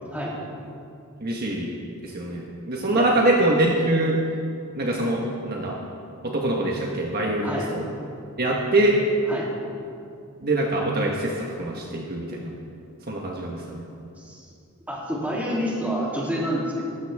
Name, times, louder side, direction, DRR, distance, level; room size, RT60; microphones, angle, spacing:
voice 1, 1.2-1.7 2.0-4.2 4.7-5.8 6.2-7.8 8.4-9.0 10.4-12.4 13.1-13.8, right 1 dB, 45° right, -2 dB, 1.4 m, -24 dB
voice 2, 14.9-16.8, equal, 5° right, -6 dB, 3.1 m, -28 dB
19.0 x 14.5 x 3.6 m, 2.5 s
head